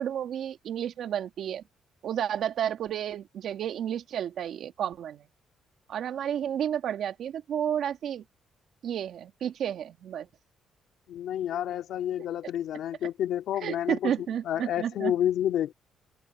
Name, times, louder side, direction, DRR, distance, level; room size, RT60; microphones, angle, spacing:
voice 1, 0.0-1.6 2.0-5.3 5.9-8.2 8.8-10.3 13.6-15.1, right 9 dB, 70° right, 2.5 m, -31 dB
voice 2, 11.1-15.7, left 11 dB, 75° left, 2.4 m, -30 dB
cardioid pair, 90°, 0 cm